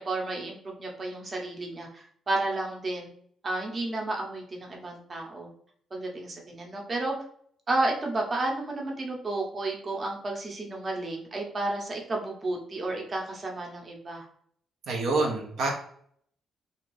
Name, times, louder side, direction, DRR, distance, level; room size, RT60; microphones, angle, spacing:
voice 1, 0.0-3.1 3.4-5.5 5.9-7.1 7.7-14.3, right 2 dB, 35° right, 0 dB, 0.7 m, -32 dB
voice 2, 14.9-15.7, right 3 dB, 75° right, 0 dB, 0.5 m, -26 dB
2.5 x 2.3 x 3.1 m, 0.64 s
cardioid pair, 90°, 0 cm